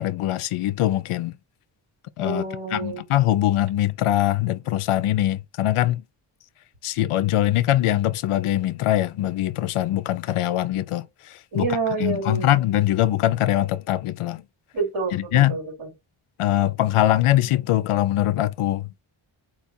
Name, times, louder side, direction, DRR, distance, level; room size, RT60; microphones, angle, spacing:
voice 1, 0.0-1.3 2.2-2.4 2.7-6.0 6.8-11.7 12.0-14.4 15.1-15.6 16.4-19.0, left 13 dB, 85° left, 0.6 m, -22 dB
voice 2, 2.2-3.0 11.5-12.5 14.7-15.9, right 4 dB, 75° right, 3.1 m, -28 dB
4.3 x 2.4 x 4.2 m
wide cardioid pair, 125°, 49 cm